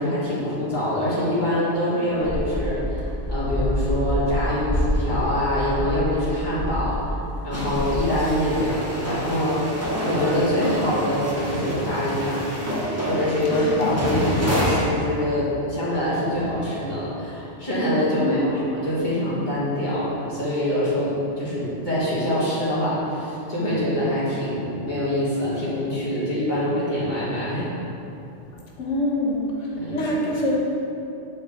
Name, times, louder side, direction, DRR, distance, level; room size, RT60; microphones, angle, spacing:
voice 1, 0.0-7.0 7.4-9.8 10.0-12.8 13.1-27.7 29.8-30.1, left 1 dB, 40° left, -10 dB, 1.6 m, -24 dB
sound 1, 2.2-7.4 7.6-8.0, equal, 20° left, 0.4 m, -27 dB
sound 2, 7.5-14.9, equal, 15° right, 0.8 m, -28 dB
voice 2, 13.5-13.9 18.2-18.6 28.8-29.4 29.9-30.8, left 1 dB, 85° left, -3 dB, 1.4 m, -25 dB
7.6 x 4.2 x 3.5 m, 2.9 s
omnidirectional pair, 1.2 m